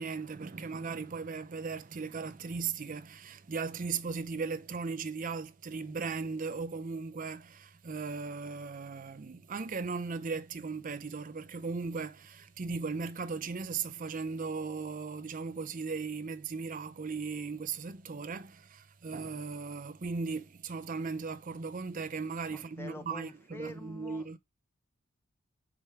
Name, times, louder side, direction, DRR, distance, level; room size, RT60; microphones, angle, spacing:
voice 1, 0.0-24.4, right 4 dB, 35° right, 0.5 m, -37 dB
voice 2, 22.5-24.3, left 1 dB, 10° left, 0.6 m, -46 dB
5.8 x 5.0 x 3.2 m
head